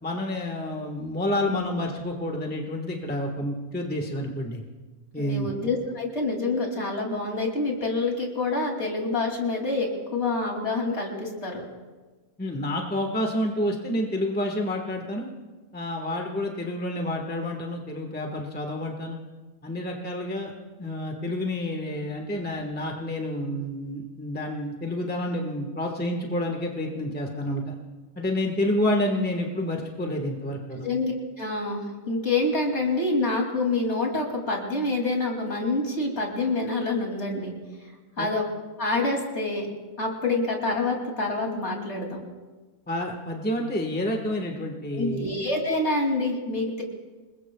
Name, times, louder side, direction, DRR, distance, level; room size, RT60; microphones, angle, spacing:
voice 1, 0.0-4.6 5.1-5.5 12.4-15.3 15.7-19.2 19.6-20.5 20.8-27.7 28.1-30.9 38.2-38.3 42.9-45.3, left 1 dB, 5° left, 2 dB, 1.3 m, -29 dB
voice 2, 5.2-11.6 30.8-37.5 38.2-38.4 38.8-39.7 40.0-42.2 44.9-46.8, left 2 dB, 50° left, 0 dB, 3.0 m, -27 dB
28.5 x 20.5 x 2.3 m, 1.3 s
omnidirectional pair, 1.5 m